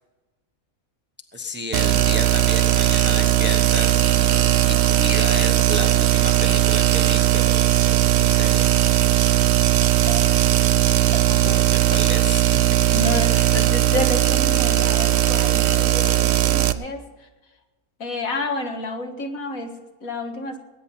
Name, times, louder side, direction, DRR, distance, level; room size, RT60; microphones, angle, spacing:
voice 1, 1.3-8.7 11.0-11.2 11.4-13.0 13.3-13.5, left 2 dB, 10° right, 5 dB, 0.8 m, -32 dB
sound 1, 1.7-16.7, right 13 dB, 60° right, 0.8 m, -18 dB
sound 2, 6.5-15.3, left 1 dB, 25° left, 1.3 m, -44 dB
voice 2, 11.3-11.7 12.9-17.0 18.0-20.6, left 2 dB, 70° left, 4 dB, 2.1 m, -30 dB
20.0 x 9.5 x 5.8 m, 1.2 s
omnidirectional pair, 1.5 m